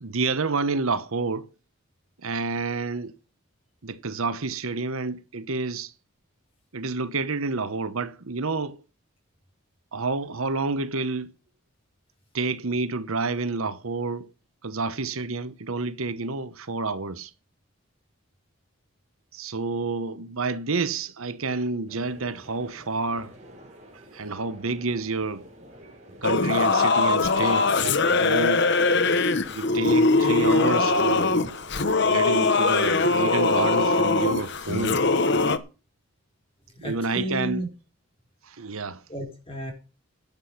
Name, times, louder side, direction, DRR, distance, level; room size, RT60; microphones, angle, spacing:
voice 1, 0.0-1.5 2.2-3.1 3.8-5.9 6.7-8.8 9.9-11.3 12.3-14.3 14.6-17.3 19.3-23.3 23.9-25.5 26.2-28.7 29.5-31.4 32.1-35.0 36.8-37.6 38.5-39.0, right 3 dB, 75° right, 1.0 m, -29 dB
sound 1, 21.9-33.3, equal, 30° right, 4.3 m, -48 dB
Singing / Musical instrument, 26.2-35.6, left 3 dB, 50° left, 1.0 m, -21 dB
voice 2, 36.7-37.7 39.1-39.7, equal, 25° left, 5.3 m, -32 dB
12.0 x 8.5 x 5.8 m
head